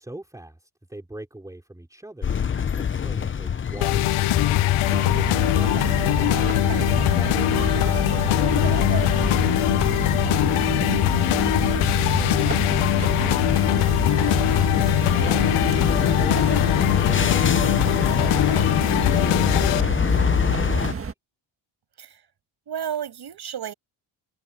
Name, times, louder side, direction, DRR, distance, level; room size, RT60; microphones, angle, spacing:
voice 1, 0.0-14.5 14.9-15.5 15.8-21.1, right 1 dB, 5° right, 3.9 m, -43 dB
sound 1, 2.2-20.9, left 7 dB, 25° left, 0.6 m, -26 dB
sound 2, 3.8-19.8, left 18 dB, 85° left, 0.6 m, -22 dB
sound 3, 4.9-21.1, right 5 dB, 25° right, 1.6 m, -29 dB
voice 2, 6.4-6.9 15.2-15.5 22.0-22.2 22.7-23.7, right 9 dB, 50° right, 7.3 m, -33 dB
wide cardioid pair, 180°, 49 cm